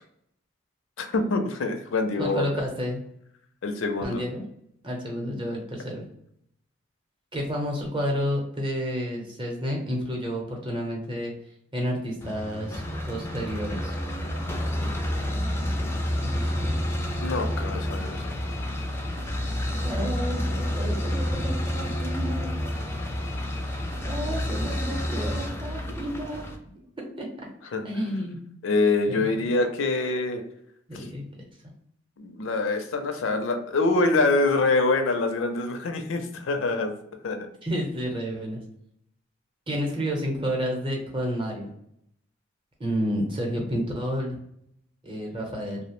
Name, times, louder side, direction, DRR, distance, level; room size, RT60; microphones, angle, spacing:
voice 1, 1.0-2.5 3.6-4.2 17.2-18.3 27.7-27.9 28.6-30.4 30.9-31.1 32.2-36.9 37.2-37.5, left 3 dB, 80° left, 6 dB, 0.5 m, -25 dB
voice 2, 2.2-3.0 4.0-4.4 4.8-6.0 7.3-11.3 11.7-14.0 16.2-16.8 19.8-22.5 24.0-26.4 27.0-27.5 27.8-28.4 29.1-29.5 30.9-31.2 37.6-38.6 39.7-41.7 42.8-44.4 45.0-45.8, equal, 25° right, 0 dB, 0.7 m, -30 dB
sound 1, 12.2-26.6, left 1 dB, 15° left, 0.3 m, -29 dB
2.6 x 2.0 x 3.0 m, 0.73 s
head